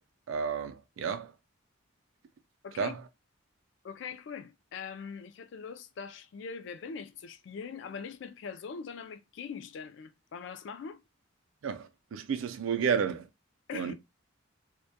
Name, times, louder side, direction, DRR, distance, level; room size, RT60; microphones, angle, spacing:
voice 1, 0.3-1.3 2.8-3.0 11.6-13.3 13.7-13.9, right 6 dB, 80° right, 0.4 m, -31 dB
voice 2, 2.6-2.9 3.8-11.0 13.7-13.9, left 6 dB, 65° left, 0.3 m, -42 dB
2.1 x 2.1 x 2.7 m
head